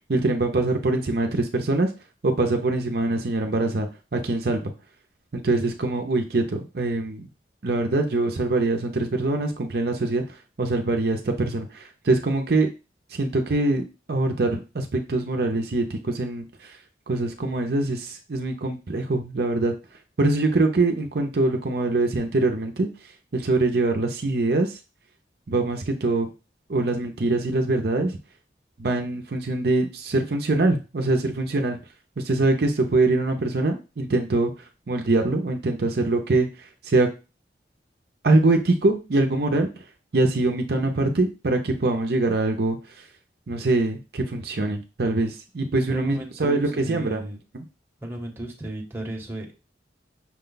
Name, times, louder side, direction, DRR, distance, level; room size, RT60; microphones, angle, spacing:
voice 1, 0.1-1.9 2.2-4.7 5.3-7.3 7.6-10.2 10.6-12.7 13.1-13.8 14.1-16.4 17.1-19.7 20.2-22.9 23.3-24.7 25.5-26.3 26.7-28.1 28.8-31.8 32.2-34.5 34.9-36.5 36.9-37.1 38.2-39.7 40.1-42.8 43.5-47.3, right 2 dB, 60° right, 4 dB, 0.6 m, -23 dB
voice 2, 45.9-47.4 48.0-49.5, right 1 dB, 15° right, -1 dB, 0.9 m, -35 dB
6.0 x 2.2 x 3.9 m, 0.30 s
head